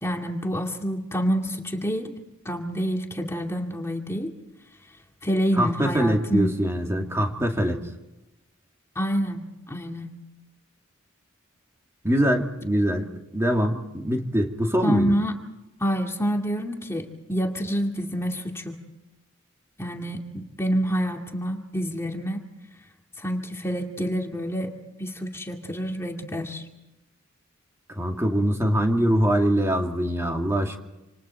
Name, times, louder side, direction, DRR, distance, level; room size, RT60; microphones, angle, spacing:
voice 1, 0.0-2.1 2.4-4.3 5.2-6.6 9.0-10.1 14.8-15.4 15.8-18.8 19.8-22.4 23.2-24.7 25.0-26.7, equal, 10° left, 1 dB, 2.3 m, -27 dB
voice 2, 5.5-7.8 12.0-15.1 28.0-30.8, equal, 15° right, 2 dB, 2.5 m, -23 dB
28.0 x 28.0 x 4.6 m, 0.97 s
head